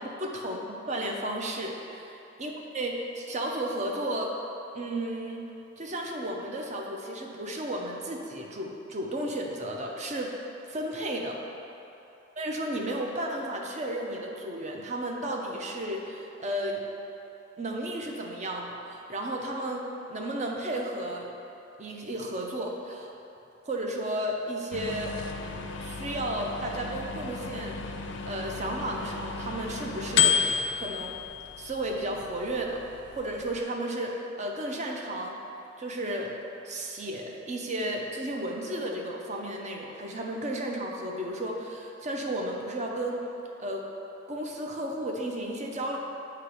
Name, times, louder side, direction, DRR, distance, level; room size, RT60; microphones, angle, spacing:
voice 1, 0.2-2.1 2.4-4.3 4.7-5.5 5.8-10.3 10.7-11.4 12.4-16.8 17.6-21.3 21.8-23.1 23.7-25.2 25.8-27.8 28.3-31.2 31.6-32.8 33.2-35.4 35.8-36.3 36.6-43.3 43.6-43.9 44.3-46.0, right 1 dB, 40° right, 0 dB, 0.6 m, -33 dB
sound 1, 24.7-33.6, left 7 dB, 70° left, 0.4 m, -32 dB
7.8 x 2.9 x 4.8 m, 2.9 s
head